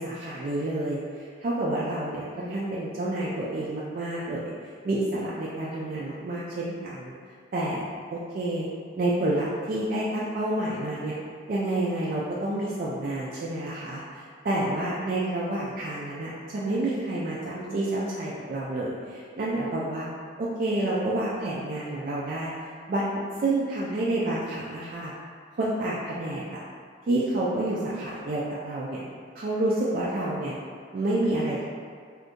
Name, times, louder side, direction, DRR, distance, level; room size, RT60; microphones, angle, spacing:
voice 1, 0.0-4.5 4.8-7.1 7.5-7.8 8.1-8.7 9.0-11.2 11.5-20.1 20.4-22.5 22.9-25.1 25.6-26.6 27.1-29.0 29.3-30.6 30.9-31.6, right 1 dB, 45° right, -7 dB, 0.3 m, -29 dB
2.5 x 2.5 x 3.6 m, 2.1 s
head